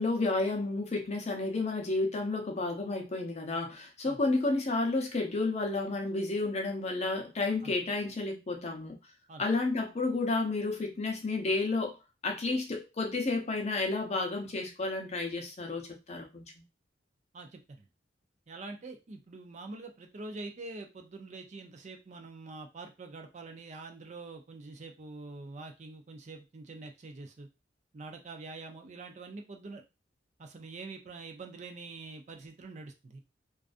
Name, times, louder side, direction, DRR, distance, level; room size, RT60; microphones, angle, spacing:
voice 1, 0.0-9.0 9.4-12.0 12.2-16.4, left 3 dB, 40° left, 3 dB, 0.6 m, -31 dB
voice 2, 17.3-17.9 18.5-27.5 27.9-29.8 30.4-33.2, right 3 dB, 40° right, 5 dB, 0.4 m, -45 dB
2.4 x 2.3 x 2.4 m, 0.26 s
head